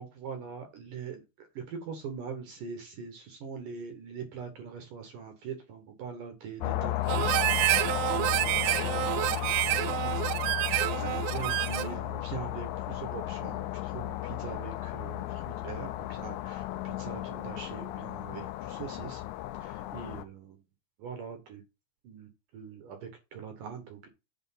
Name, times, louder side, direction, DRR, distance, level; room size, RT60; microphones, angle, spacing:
voice 1, 0.0-7.4 7.7-10.4 10.7-19.2 19.6-20.6 21.0-21.6 22.0-24.1, right 6 dB, 65° right, 2.1 m, -42 dB
sound 1, 6.6-20.2, left 16 dB, 80° left, 2.8 m, -34 dB
Harmonica, 7.1-12.0, right 19 dB, 85° right, 3.0 m, -28 dB
8.1 x 4.3 x 5.7 m
omnidirectional pair, 5.4 m